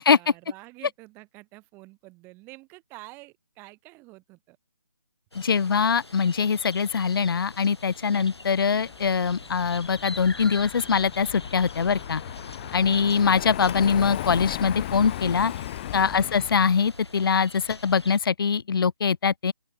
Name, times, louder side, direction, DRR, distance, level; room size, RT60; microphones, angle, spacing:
voice 1, 0.0-4.6 8.1-8.3 12.6-13.1 16.0-16.4, right 22 dB, 15° right, 6.2 m, -48 dB
sound 1, 5.3-18.2, left 2 dB, 85° left, 2.4 m, -43 dB
voice 2, 5.4-12.2 12.7-15.5 15.9-19.5, left 6 dB, 60° left, 0.5 m, -23 dB
Car passing by, 8.4-16.9, left 14 dB, 20° left, 0.8 m, -36 dB
open air
figure-of-eight pair, 150°, 13 cm